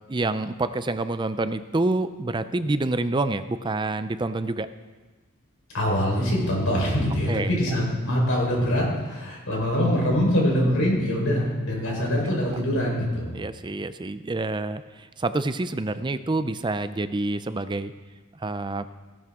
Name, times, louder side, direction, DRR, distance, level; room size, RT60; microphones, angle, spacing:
voice 1, 0.1-4.7 7.3-7.5 11.9-12.1 13.3-17.9 18.3-18.9, right 2 dB, 20° right, 12 dB, 0.4 m, -27 dB
voice 2, 5.7-13.3, equal, 65° left, -2 dB, 4.3 m, -24 dB
16.0 x 12.0 x 3.7 m, 1.3 s
head